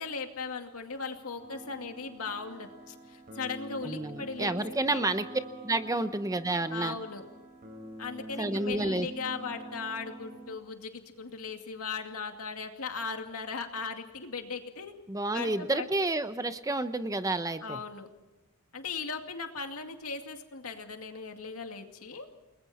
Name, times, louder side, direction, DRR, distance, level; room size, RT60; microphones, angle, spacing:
voice 1, 0.0-5.1 6.7-7.2 8.0-14.9 15.3-15.9 17.6-18.1 18.7-22.3, left 4 dB, 70° left, 4 dB, 2.4 m, -38 dB
sound 1, 1.4-10.6, right 1 dB, 45° right, 5.0 m, -45 dB
voice 2, 3.8-5.2 5.6-6.9 8.4-9.1 15.1-17.8, right 2 dB, 15° right, 10 dB, 0.8 m, -30 dB
29.5 x 20.5 x 4.3 m, 1.1 s
head